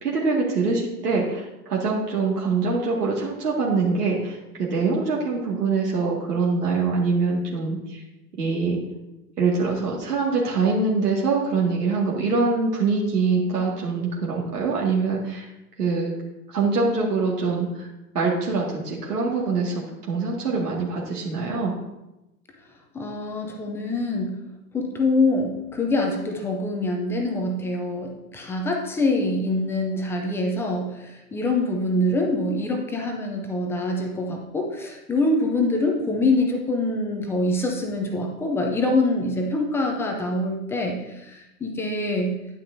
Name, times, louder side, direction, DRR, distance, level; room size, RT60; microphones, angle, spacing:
voice 1, 0.0-8.0 8.4-8.8 9.4-15.5 15.8-16.1 16.5-17.9 18.1-21.7, right 4 dB, 80° right, -4 dB, 2.1 m, -24 dB
voice 2, 22.9-24.4 24.7-42.4, left 2 dB, 5° left, 1 dB, 0.4 m, -25 dB
9.6 x 9.3 x 2.7 m, 0.94 s
hypercardioid pair, 120°, 46 cm